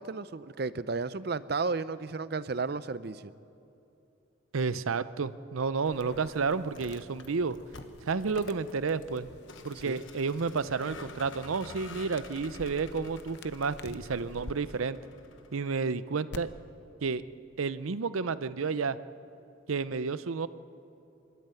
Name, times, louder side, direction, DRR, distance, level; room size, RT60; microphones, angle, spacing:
voice 1, 0.0-3.3 9.8-10.0, right 4 dB, 50° right, 15 dB, 0.5 m, -33 dB
voice 2, 4.5-7.6 8.0-9.3 9.6-15.0 15.5-16.5 17.0-17.2 17.6-19.0 19.7-20.5, right 4 dB, 90° right, 14 dB, 0.6 m, -31 dB
sound 1, 5.9-14.5 16.3-16.4, left 3 dB, 55° left, 0.8 m, -50 dB
Vehicle, 6.7-16.0, left 3 dB, 70° left, 1.3 m, -49 dB
26.0 x 12.5 x 9.0 m, 2.8 s
head